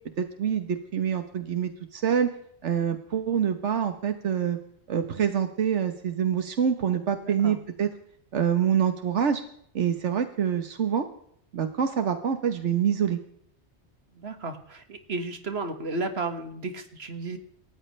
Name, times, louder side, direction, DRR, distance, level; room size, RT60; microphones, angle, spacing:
voice 1, 0.2-2.3 2.6-4.6 4.9-7.9 8.3-9.4 9.7-11.1 11.5-13.2, right 8 dB, 85° right, 7 dB, 1.4 m, -26 dB
voice 2, 7.2-7.6 14.2-17.4, right 3 dB, 65° right, 7 dB, 2.0 m, -33 dB
27.5 x 14.0 x 3.3 m, 0.68 s
omnidirectional pair, 1.2 m